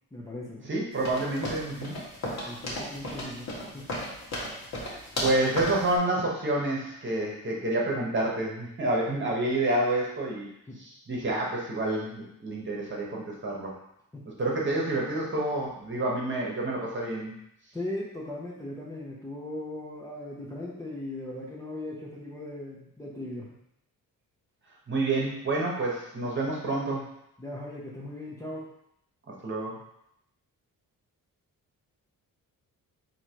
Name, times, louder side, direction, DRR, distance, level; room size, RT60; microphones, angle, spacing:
voice 1, 0.1-0.7 2.4-3.5 3.7-4.0 10.7-10.8 14.1-14.8 17.7-23.5 27.4-28.7, left 1 dB, 10° left, -6 dB, 0.8 m, -38 dB
voice 2, 0.6-2.0 5.2-10.5 10.8-13.7 14.4-17.3 24.9-27.1 29.4-29.8, right 2 dB, 30° right, -3 dB, 1.2 m, -28 dB
sound 1, 1.0-5.9, left 1 dB, 45° left, 1.5 m, -35 dB
3.9 x 3.0 x 4.5 m, 0.77 s
cardioid pair, 120°, 36 cm